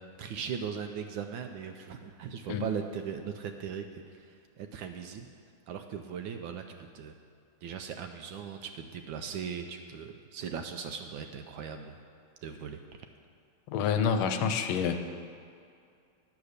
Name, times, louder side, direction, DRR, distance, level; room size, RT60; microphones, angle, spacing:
voice 1, 0.2-4.2 4.6-5.3 5.7-6.6 6.9-7.1 7.6-12.0 12.4-12.8, right 7 dB, 75° right, 6 dB, 1.2 m, -38 dB
voice 2, 13.7-15.0, left 7 dB, 75° left, 7 dB, 1.5 m, -27 dB
9.7 x 7.2 x 6.5 m, 2.4 s
omnidirectional pair, 2.4 m